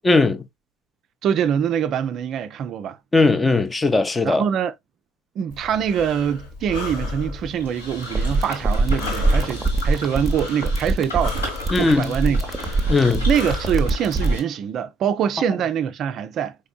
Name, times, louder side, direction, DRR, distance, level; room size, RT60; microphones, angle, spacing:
voice 1, 0.0-0.4 3.1-4.4 11.7-12.1 12.9-13.3, left 3 dB, 15° left, 0.5 m, -18 dB
voice 2, 1.2-3.0 4.2-4.7 5.4-12.9 13.3-16.6, right 8 dB, 45° right, 0.4 m, -24 dB
Breathing, 5.5-13.9, left 2 dB, 60° left, 1.3 m, -34 dB
sound 1, 7.6-14.4, equal, 80° left, 2.0 m, -35 dB
sound 2, 8.0-14.4, right 2 dB, 15° right, 0.7 m, -22 dB
4.3 x 3.2 x 2.3 m
figure-of-eight pair, 65°, 0 cm